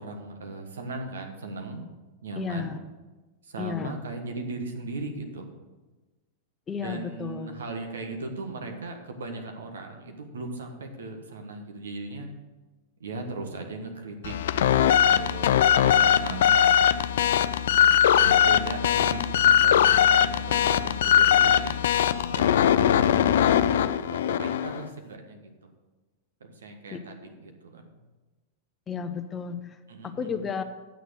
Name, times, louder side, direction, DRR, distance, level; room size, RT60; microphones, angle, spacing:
voice 1, 0.0-1.8 2.2-2.8 3.4-5.5 6.8-12.3 13.0-16.7 18.2-21.8 22.3-25.7 26.4-28.0 29.9-30.4, right 3 dB, 75° right, 4 dB, 1.5 m, -38 dB
voice 2, 2.4-2.8 3.6-4.0 6.7-7.6 26.9-27.0 28.9-29.8 30.0-30.6, left 6 dB, 25° left, 9 dB, 0.8 m, -33 dB
sound 1, 14.2-24.8, left 9 dB, 65° left, 0.4 m, -21 dB
9.2 x 6.6 x 6.5 m, 1.2 s
hypercardioid pair, 95°, 0 cm